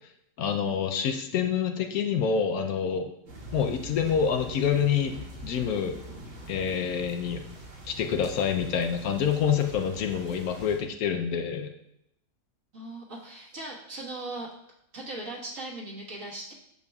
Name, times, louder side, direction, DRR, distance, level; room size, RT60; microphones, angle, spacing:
voice 1, 0.4-3.1 3.5-6.0 6.5-7.4 7.8-11.7, left 7 dB, 75° left, 5 dB, 1.0 m, -27 dB
sound 1, 3.3-10.8, right 1 dB, 75° right, 2.3 m, -44 dB
voice 2, 12.7-14.5 14.9-16.5, right 2 dB, 55° right, -3 dB, 1.8 m, -38 dB
8.7 x 6.8 x 2.3 m, 0.79 s
omnidirectional pair, 1.7 m